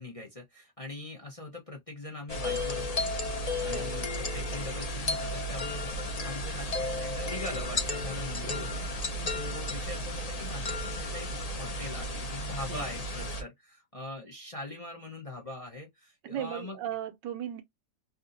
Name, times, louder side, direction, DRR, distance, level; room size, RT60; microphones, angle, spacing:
voice 1, 0.0-3.1 3.6-11.3 11.6-16.8, left 2 dB, 25° left, 0.7 m, -42 dB
sound 1, 2.3-13.4, left 1 dB, 50° left, 0.4 m, -33 dB
voice 2, 3.6-3.9 8.4-8.7 9.1-9.4 12.7-12.8 16.2-17.6, right 10 dB, 80° right, 1.4 m, -38 dB
3.5 x 2.7 x 2.5 m
omnidirectional pair, 1.9 m